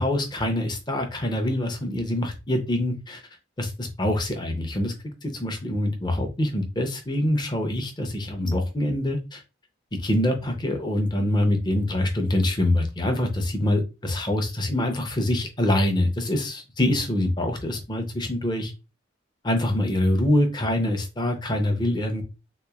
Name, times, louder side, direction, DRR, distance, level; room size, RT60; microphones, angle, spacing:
voice 1, 0.0-3.2 3.6-4.9 5.2-9.4 9.9-18.7 19.4-22.2, left 1 dB, 20° left, 5 dB, 0.5 m, -25 dB
3.5 x 2.9 x 2.3 m, 0.28 s
head